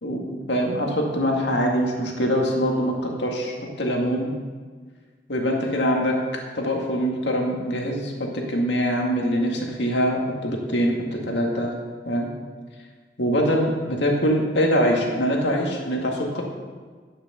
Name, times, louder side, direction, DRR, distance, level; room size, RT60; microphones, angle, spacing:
voice 1, 0.0-4.3 5.3-6.2 6.5-11.8 12.1-12.3 13.2-16.4, equal, 75° left, 0 dB, 1.9 m, -23 dB
10.0 x 6.7 x 6.7 m, 1.5 s
head